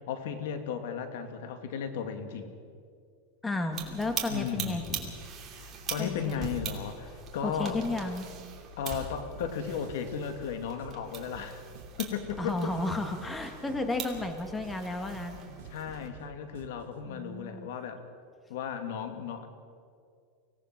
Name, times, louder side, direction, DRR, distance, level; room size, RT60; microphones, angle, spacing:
voice 1, 0.1-2.5 4.3-5.0 5.5-7.8 8.8-11.6 12.0-12.7 15.7-18.0 18.5-19.5, left 7 dB, 75° left, 7 dB, 2.3 m, -35 dB
voice 2, 3.4-5.1 6.0-6.5 7.4-8.3 12.4-15.5 17.0-17.7, left 2 dB, 10° left, 6 dB, 1.8 m, -33 dB
sound 1, 3.7-16.1, right 6 dB, 25° right, 2.7 m, -42 dB
sound 2, 9.4-17.0, right 6 dB, 85° right, 1.6 m, -51 dB
24.5 x 17.5 x 6.0 m, 2.2 s
supercardioid pair, 150°, 0 cm